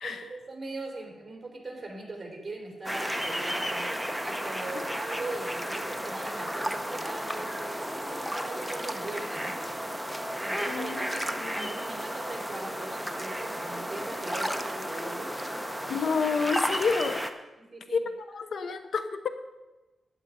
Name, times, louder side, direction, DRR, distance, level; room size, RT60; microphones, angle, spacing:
voice 1, 0.0-9.6 10.4-15.3 17.6-18.0 18.6-18.7, right 2 dB, 25° right, 1 dB, 3.3 m, -41 dB
sound 1, 2.8-17.3, equal, ahead, 0.8 m, -33 dB
voice 2, 10.7-11.7 15.9-17.3 17.9-19.3, left 5 dB, 70° left, 10 dB, 0.8 m, -30 dB
12.0 x 9.4 x 5.0 m, 1.1 s
cardioid pair, 100°, 0 cm